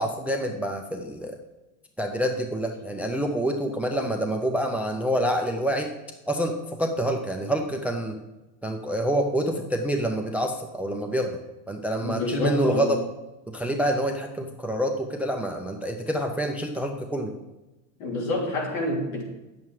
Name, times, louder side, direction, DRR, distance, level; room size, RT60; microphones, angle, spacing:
voice 1, 0.0-1.4 2.0-5.9 6.3-8.2 8.6-11.4 11.7-13.0 13.5-17.3, right 1 dB, 5° right, 4 dB, 0.4 m, -27 dB
voice 2, 12.0-13.0 18.0-19.2, left 2 dB, 75° left, -1 dB, 3.2 m, -27 dB
9.3 x 7.5 x 4.7 m, 1.1 s
cardioid pair, 150°, 43 cm